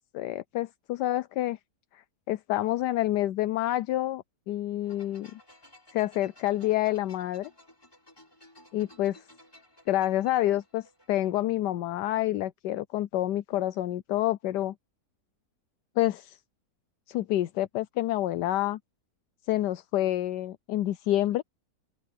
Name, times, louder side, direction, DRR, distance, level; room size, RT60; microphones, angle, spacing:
voice 1, 0.1-1.6 1.9-5.4 5.9-7.5 8.7-9.2 9.9-14.7 16.0-16.4 17.1-18.8 19.5-21.4, left 14 dB, 80° left, 1.2 m, -28 dB
sound 1, 4.8-11.4, left 1 dB, 15° left, 6.2 m, -56 dB
open air
omnidirectional pair, 1.8 m